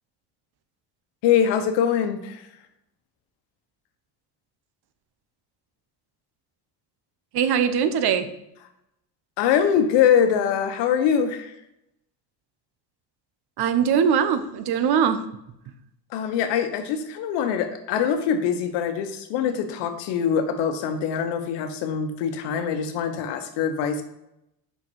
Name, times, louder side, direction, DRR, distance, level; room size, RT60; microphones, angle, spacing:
voice 1, 1.2-2.5 9.4-11.5 16.1-24.0, left 8 dB, 90° left, 8 dB, 1.0 m, -23 dB
voice 2, 7.3-8.3 13.6-15.2, right 7 dB, 65° right, 10 dB, 0.9 m, -21 dB
6.1 x 5.6 x 4.6 m, 0.83 s
supercardioid pair, 85°, 41 cm